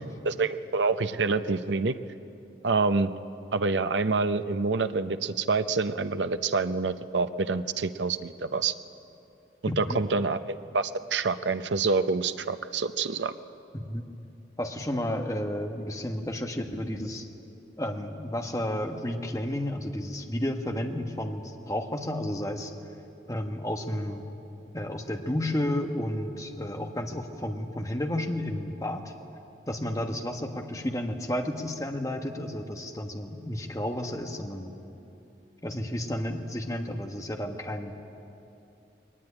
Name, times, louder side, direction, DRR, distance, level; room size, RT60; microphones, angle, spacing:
voice 1, 0.2-1.9 2.6-3.1 3.5-8.7 9.8-13.3, right 4 dB, 90° right, 11 dB, 0.7 m, -27 dB
voice 2, 9.7-10.0 13.7-14.0 14.6-17.3 17.8-22.7 23.3-24.2 24.7-29.1 29.7-34.7 35.6-37.9, left 1 dB, 20° left, 4 dB, 1.3 m, -32 dB
21.0 x 18.5 x 9.8 m, 2.8 s
head